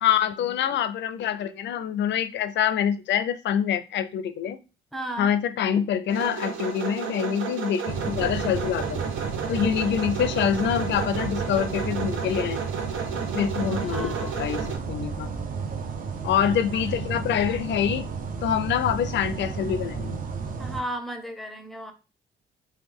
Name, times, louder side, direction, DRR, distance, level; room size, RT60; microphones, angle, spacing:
voice 1, 0.0-4.6 5.2-9.1 9.5-12.6 13.3-15.3 16.2-18.1 18.4-20.2, left 9 dB, 65° left, 0.4 m, -25 dB
voice 2, 4.9-5.3 13.6-14.5 20.6-21.9, right 1 dB, ahead, 0.6 m, -35 dB
sound 1, 6.1-14.8, right 6 dB, 85° right, 0.6 m, -33 dB
sound 2, 7.9-20.8, right 5 dB, 45° right, 0.6 m, -32 dB
3.1 x 2.2 x 3.5 m
cardioid pair, 90°, 20 cm